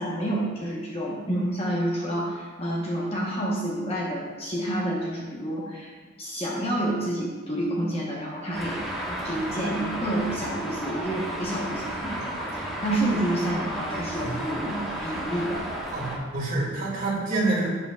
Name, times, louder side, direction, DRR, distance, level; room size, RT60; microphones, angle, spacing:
voice 1, 0.0-5.9 6.2-8.9 9.2-15.7, right 1 dB, 30° left, -4 dB, 1.1 m, -29 dB
Traffic noise roadway noise, 8.5-16.2, right 1 dB, ahead, 1.4 m, -33 dB
voice 2, 15.9-17.7, right 2 dB, 40° right, -4 dB, 2.2 m, -27 dB
10.5 x 7.9 x 2.4 m, 1.5 s
head